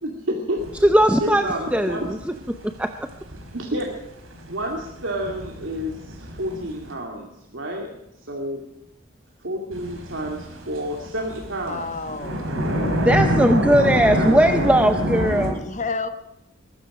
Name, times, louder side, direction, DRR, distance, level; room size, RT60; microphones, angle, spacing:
voice 1, 0.0-0.6 1.2-2.1 3.5-3.9 4.5-7.9 8.2-8.6 9.4-11.9 14.1-14.7, equal, 65° right, 0 dB, 2.4 m, -29 dB
sound 1, 0.6-6.9 9.7-15.5, equal, 85° right, 4.5 m, -27 dB
voice 2, 0.8-3.1 13.0-15.6, right 1 dB, 5° right, 7 dB, 0.6 m, -19 dB
voice 3, 11.7-12.4 15.4-16.1, left 4 dB, 35° left, 8 dB, 1.2 m, -30 dB
22.0 x 12.5 x 5.0 m, 0.86 s
head